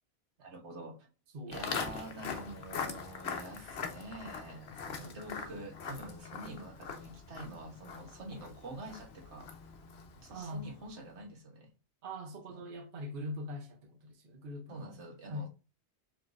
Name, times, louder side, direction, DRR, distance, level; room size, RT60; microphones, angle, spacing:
voice 1, 0.4-1.1 1.5-9.5 10.1-11.7 12.5-12.6 14.7-15.5, right 2 dB, 85° right, 1.5 m, -46 dB
Walk footsteps, 1.5-10.7, left 6 dB, 70° left, 1.0 m, -42 dB
voice 2, 5.0-5.5 10.3-10.8 12.0-15.0 15.3-15.5, left 1 dB, 55° right, 0.9 m, -43 dB
4.8 x 3.2 x 2.5 m
omnidirectional pair, 1.1 m